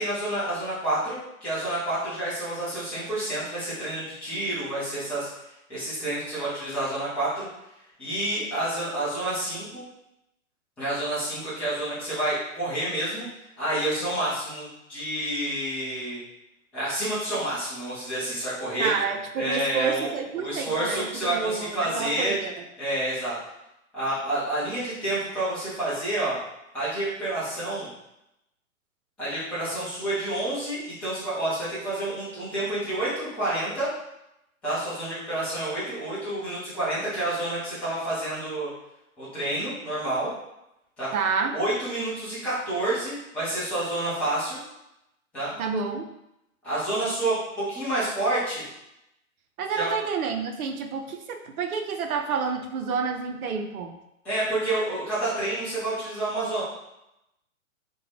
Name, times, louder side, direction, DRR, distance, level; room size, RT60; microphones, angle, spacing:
voice 1, 0.0-5.3 5.7-7.5 8.0-9.8 10.8-13.3 13.6-16.2 16.7-18.9 19.3-20.1 20.3-22.3 22.8-23.4 23.9-26.4 26.7-27.9 29.2-33.9 34.6-38.7 39.2-40.3 41.0-41.1 41.5-44.6 45.3-45.6 46.6-48.6 49.7-49.9 54.2-56.6, right 1 dB, 5° left, -12 dB, 0.4 m, -29 dB
voice 2, 18.8-22.6 41.1-41.6 45.6-46.0 49.6-53.9, right 5 dB, 75° right, 4 dB, 0.6 m, -29 dB
2.5 x 2.1 x 3.2 m, 0.87 s
hypercardioid pair, 125°, 43 cm